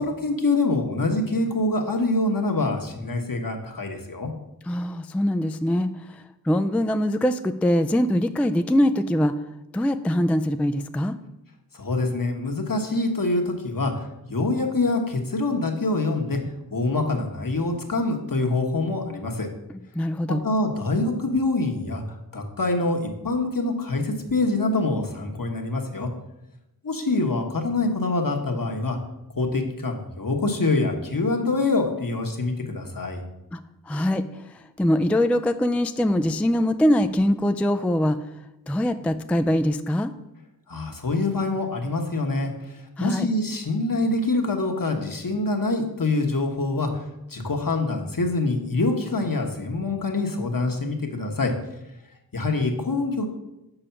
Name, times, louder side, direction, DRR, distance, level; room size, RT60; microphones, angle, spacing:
voice 1, 0.0-4.3 11.7-16.4 16.7-19.5 20.4-22.0 22.3-26.1 26.8-29.0 29.4-33.2 40.7-47.0 47.3-51.5 52.3-53.3, left 2 dB, 60° left, 2 dB, 1.2 m, -25 dB
voice 2, 4.7-9.3 9.7-11.2 19.7-20.4 33.5-33.6 33.9-38.2 38.7-40.1 43.0-43.3, left 1 dB, 5° left, 10 dB, 0.3 m, -23 dB
6.9 x 4.9 x 5.7 m, 0.93 s
wide cardioid pair, 45°, 39 cm